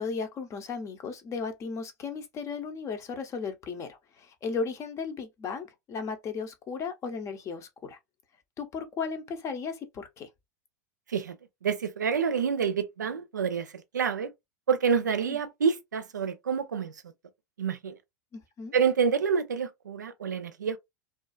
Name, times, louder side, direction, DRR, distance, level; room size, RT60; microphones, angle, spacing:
voice 1, 0.0-8.0 8.6-10.3 15.3-15.4 18.3-18.7, left 5 dB, 30° left, 0.7 m, -35 dB
voice 2, 11.6-14.3 14.7-17.0 17.6-18.0 18.7-20.8, right 6 dB, 85° right, 0.4 m, -28 dB
2.5 x 2.3 x 2.3 m
hypercardioid pair, 90°, 9 cm